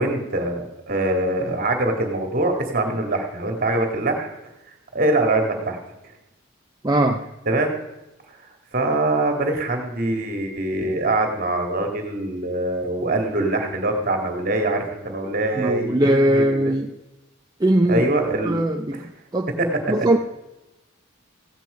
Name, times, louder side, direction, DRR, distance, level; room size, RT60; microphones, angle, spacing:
voice 1, 0.0-4.3 4.9-5.8 7.5-7.7 8.3-8.4 8.7-16.7 17.9-18.6 18.9-19.0 19.6-19.7, right 2 dB, 40° right, 3 dB, 2.2 m, -23 dB
voice 2, 6.8-7.2 15.6-16.9 17.6-18.1 18.4-19.0 19.3-19.5 19.9-20.2, right 1 dB, 20° right, 3 dB, 0.5 m, -19 dB
15.5 x 9.2 x 5.1 m, 0.96 s
head